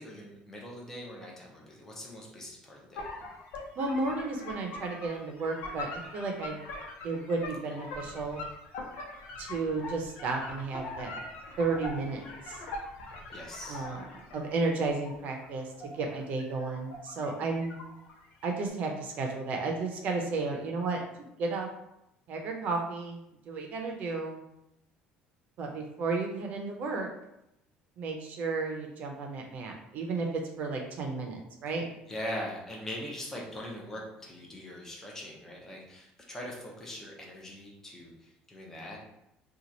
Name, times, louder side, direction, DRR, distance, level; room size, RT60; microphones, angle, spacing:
voice 1, 0.0-3.1 13.3-13.9 32.1-39.0, left 1 dB, 15° left, -2 dB, 0.8 m, -41 dB
sound 1, 3.0-14.4 14.8-17.4 17.6-18.4, left 2 dB, 75° left, 0.9 m, -42 dB
voice 2, 3.8-6.6 7.0-8.4 9.4-11.1 11.6-12.6 13.7-14.0 14.3-17.8 18.4-21.7 22.3-23.2 23.5-24.4 25.6-27.1 28.0-31.8, right 3 dB, 50° right, 2 dB, 0.6 m, -33 dB
3.0 x 2.4 x 3.9 m, 0.83 s
cardioid pair, 145°, 3 cm